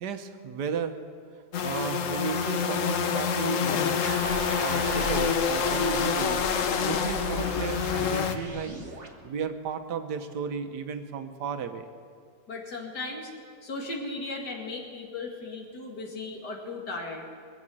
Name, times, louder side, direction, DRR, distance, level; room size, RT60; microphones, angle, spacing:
voice 1, 0.0-1.0 1.6-4.1 4.6-6.4 6.8-8.8 9.2-11.9, right 6 dB, 80° right, 8 dB, 1.5 m, -34 dB
sound 1, 1.5-8.4, left 7 dB, 60° left, 1.0 m, -27 dB
sound 2, 4.0-9.1, right 2 dB, 35° right, 1.8 m, -36 dB
voice 2, 12.5-13.3 13.6-17.2, left 3 dB, 75° left, 0 dB, 2.7 m, -36 dB
23.0 x 7.9 x 7.6 m, 2.2 s
omnidirectional pair, 1.8 m